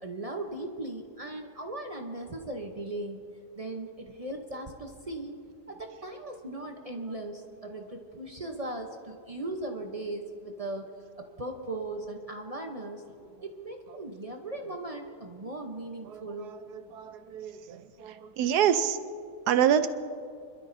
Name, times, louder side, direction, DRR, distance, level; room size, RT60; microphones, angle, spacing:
voice 1, 0.0-3.2 3.5-5.4 5.7-10.9 11.2-13.0 13.4-16.5, right 2 dB, 40° right, 3 dB, 0.5 m, -38 dB
voice 2, 16.1-19.0 19.5-19.9, right 9 dB, 75° right, 10 dB, 1.1 m, -27 dB
26.0 x 12.0 x 2.6 m, 2.2 s
omnidirectional pair, 1.8 m